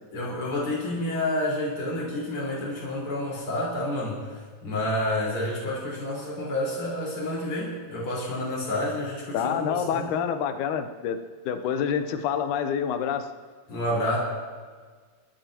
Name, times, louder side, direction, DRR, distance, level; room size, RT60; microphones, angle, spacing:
voice 1, 0.1-10.1 13.7-14.2, left 1 dB, 35° left, -5 dB, 5.6 m, -29 dB
voice 2, 9.3-11.2 11.5-13.3, left 8 dB, 70° left, 7 dB, 2.1 m, -27 dB
28.5 x 13.5 x 3.0 m, 1.5 s
omnidirectional pair, 4.3 m